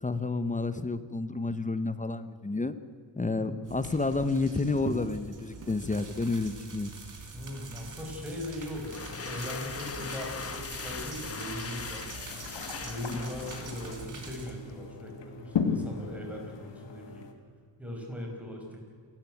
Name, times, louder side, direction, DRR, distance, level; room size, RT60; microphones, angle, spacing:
voice 1, 0.0-2.7 3.2-6.9 13.1-13.2, left 3 dB, 20° left, 12 dB, 1.0 m, -30 dB
voice 2, 3.2-3.6 7.3-12.1 12.8-17.3 17.8-18.8, left 1 dB, 5° right, 0 dB, 5.9 m, -39 dB
sound 1, 3.6-14.4, right 3 dB, 45° right, 4.6 m, -44 dB
sound 2, 8.8-14.4, left 5 dB, 35° left, 1.4 m, -40 dB
sound 3, 12.1-17.3, left 5 dB, 90° left, 2.5 m, -36 dB
27.5 x 13.5 x 9.3 m, 2.2 s
wide cardioid pair, 135°, 42 cm